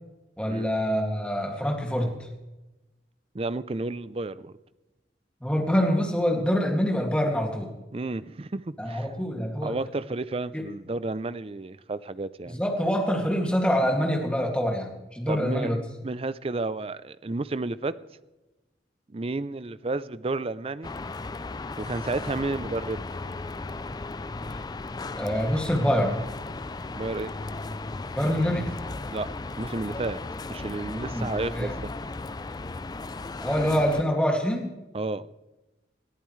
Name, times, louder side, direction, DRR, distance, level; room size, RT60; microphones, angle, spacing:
voice 1, 0.4-2.1 5.4-7.7 8.8-9.8 10.5-10.6 12.5-15.8 25.1-26.2 28.1-28.7 30.9-31.7 33.4-34.7, equal, 5° left, 1 dB, 2.2 m, -25 dB
voice 2, 3.3-4.5 7.9-9.1 9.6-12.6 15.3-15.7 16.0-17.9 19.1-20.9 21.8-23.1 26.9-27.3 29.1-29.3 29.6-30.2 30.5-31.9 34.9-35.3, right 2 dB, 35° right, 16 dB, 0.5 m, -31 dB
sound 1, 20.8-34.0, left 3 dB, 20° left, 0.4 m, -36 dB
21.0 x 14.0 x 3.2 m, 1.1 s
head